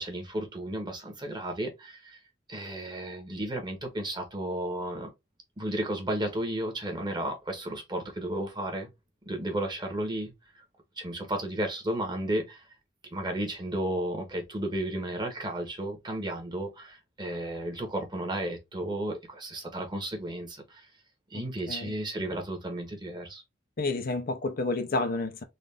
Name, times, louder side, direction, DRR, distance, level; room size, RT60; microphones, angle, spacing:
voice 1, 0.0-2.2 2.5-5.1 5.6-8.9 9.3-10.3 11.0-12.6 13.1-20.9 21.3-23.4, right 1 dB, 25° right, 1.2 m, -33 dB
voice 2, 23.8-25.4, left 3 dB, 50° left, 0.6 m, -30 dB
4.0 x 2.5 x 3.3 m
head